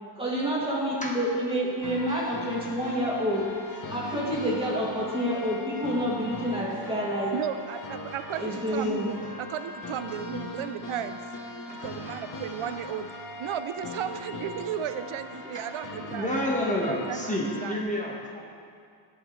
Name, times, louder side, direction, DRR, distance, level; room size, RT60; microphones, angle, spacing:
voice 1, 0.2-3.5 3.9-7.3 8.4-9.1, equal, 10° right, -6 dB, 2.4 m, -28 dB
sound 1, 1.8-17.8, left 2 dB, 40° left, 1.1 m, -40 dB
voice 2, 7.3-11.2 11.7-13.1 13.4-16.3 16.9-17.8, right 9 dB, 80° right, 10 dB, 0.7 m, -35 dB
voice 3, 11.7-12.2 12.6-12.9 15.4-18.4, left 1 dB, 15° left, -3 dB, 1.4 m, -31 dB
20.0 x 6.8 x 3.2 m, 2.3 s
wide cardioid pair, 145°, 48 cm